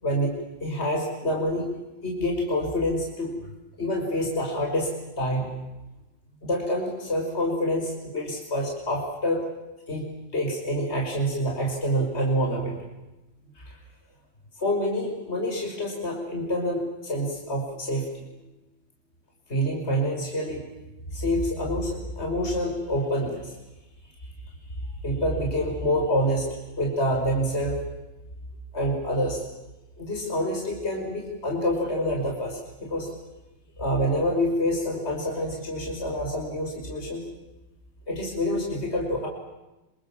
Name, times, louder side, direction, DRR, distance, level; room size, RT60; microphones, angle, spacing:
voice 1, 0.0-0.3 0.6-1.7 2.0-3.4 3.8-4.9 5.2-5.5 6.4-9.4 9.9-12.8 13.6-13.8 14.6-18.2 19.5-20.6 21.1-23.5 25.0-27.8 28.7-29.4 30.0-33.1 33.8-37.2 38.1-39.3, equal, 30° left, 0 dB, 5.8 m, -27 dB
27.0 x 26.5 x 7.3 m, 1.0 s
omnidirectional pair, 2.1 m